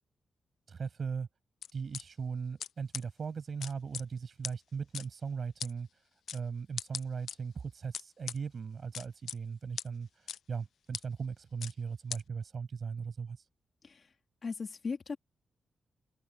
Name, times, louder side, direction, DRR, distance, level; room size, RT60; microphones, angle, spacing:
voice 1, 0.7-1.3 1.7-6.0 6.3-13.5, right 5 dB, 45° right, 6.4 m, -38 dB
sound 1, 1.6-2.0 2.6-2.7 2.9-3.0 3.6-4.0 4.4-4.5 4.9-5.0 5.6-5.7 6.3-6.4 6.8-7.3 7.9-8.4 8.9-9.4 9.8-9.9 10.3-10.4 10.9-11.0 11.6-11.7 12.1-12.2, left 9 dB, 80° left, 0.4 m, -38 dB
voice 2, 14.4-15.2, left 5 dB, 40° left, 2.1 m, -37 dB
wide cardioid pair, 135°, 0 cm